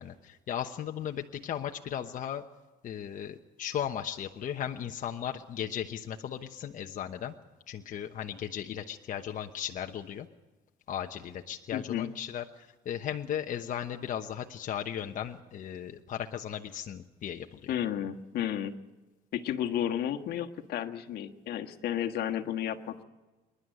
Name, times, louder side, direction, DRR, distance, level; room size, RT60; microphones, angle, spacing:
voice 1, 0.0-2.4 2.8-7.3 7.7-10.3 10.9-17.7, left 9 dB, 50° left, 4 dB, 1.1 m, -36 dB
voice 2, 11.7-12.1 17.7-18.7 19.3-23.0, left 10 dB, 70° left, 5 dB, 1.5 m, -32 dB
27.0 x 11.5 x 9.2 m, 1.2 s
cardioid pair, 110°, 17 cm